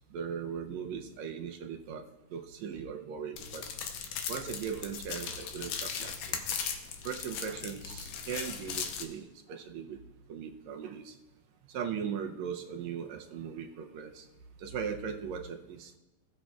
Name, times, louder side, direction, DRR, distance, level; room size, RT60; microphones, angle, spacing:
voice 1, 0.1-2.0 2.3-3.6 4.3-6.4 7.0-10.0 10.3-11.2 11.7-14.3 14.6-16.0, right 7 dB, 75° right, 4 dB, 1.8 m, -39 dB
sound 1, 3.4-9.0, left 7 dB, 85° left, 2.5 m, -38 dB
18.5 x 8.6 x 2.4 m, 1.0 s
omnidirectional pair, 3.7 m